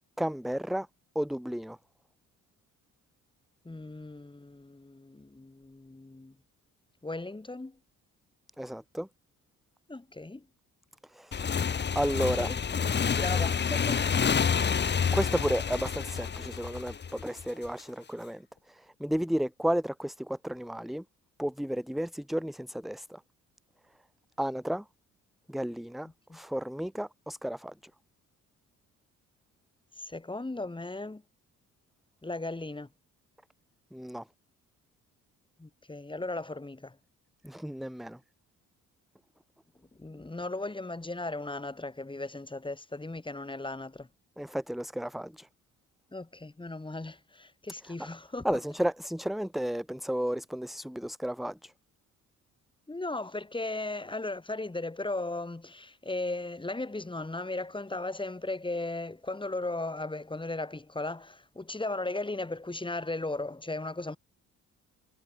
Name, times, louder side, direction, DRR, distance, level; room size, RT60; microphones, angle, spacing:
voice 1, 0.2-0.9 1.1-1.8 8.6-9.1 11.1-11.6 11.9-12.5 15.1-18.4 18.7-21.0 21.4-23.2 24.4-24.8 25.5-26.1 26.3-27.7 33.9-34.2 37.4-38.2 44.4-45.5 48.4-51.7, equal, ahead, 0.7 m, -32 dB
voice 2, 3.6-6.3 7.0-7.8 9.9-10.5 12.4-14.0 26.0-26.4 30.0-31.2 32.2-32.9 35.6-37.0 40.0-44.1 46.1-48.6 52.9-64.2, left 2 dB, 15° left, 6.1 m, -36 dB
Motorcycle / Engine, 11.3-17.7, left 6 dB, 35° left, 1.2 m, -28 dB
cardioid pair, 90°, 32 cm